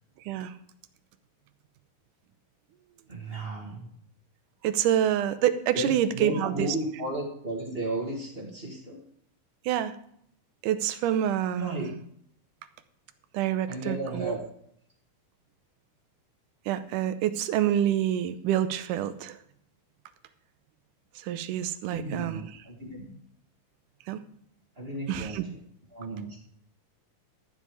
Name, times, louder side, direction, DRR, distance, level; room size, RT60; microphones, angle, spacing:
voice 1, 3.1-3.9 5.7-9.0 11.5-12.0 13.7-14.4 21.9-23.2 24.8-25.4 25.9-26.4, right 1 dB, 25° right, -1 dB, 1.4 m, -34 dB
voice 2, 4.6-6.8 9.7-10.0 10.6-11.9 13.3-14.4 16.7-19.4 21.2-22.6 24.1-24.2 25.1-25.4, right 11 dB, 80° right, 11 dB, 2.1 m, -27 dB
12.5 x 7.7 x 4.8 m, 0.68 s
omnidirectional pair, 4.0 m